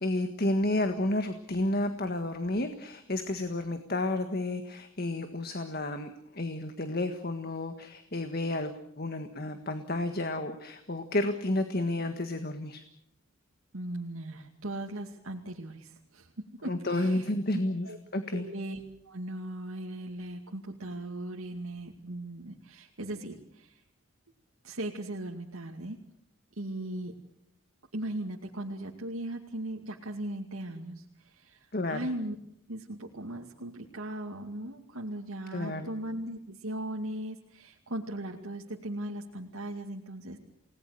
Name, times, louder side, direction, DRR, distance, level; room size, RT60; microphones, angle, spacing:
voice 1, 0.0-12.8 16.6-18.5 31.7-32.1 35.5-35.9, left 1 dB, 45° left, 7 dB, 1.7 m, -31 dB
voice 2, 13.7-17.3 17.8-18.0 18.3-23.8 24.6-26.0 26.6-27.1 27.9-32.4 32.7-40.4, right 1 dB, 85° right, 0 dB, 2.4 m, -38 dB
30.0 x 19.0 x 6.7 m, 0.74 s
head